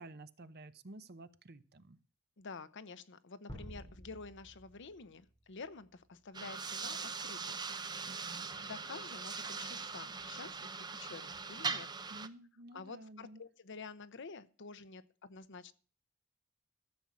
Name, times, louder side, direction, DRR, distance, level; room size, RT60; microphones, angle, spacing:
voice 1, 0.0-2.0 8.1-8.4 12.1-13.4, right 2 dB, 50° right, 0.9 m, -52 dB
voice 2, 2.4-7.7 8.0-8.1 8.5-11.9 12.7-15.7, left 4 dB, 60° left, 0.8 m, -49 dB
sound 1, 3.5-5.9, equal, 25° left, 3.5 m, -51 dB
sound 2, 6.3-12.3, right 4 dB, 20° right, 0.7 m, -41 dB
14.0 x 7.2 x 6.2 m
head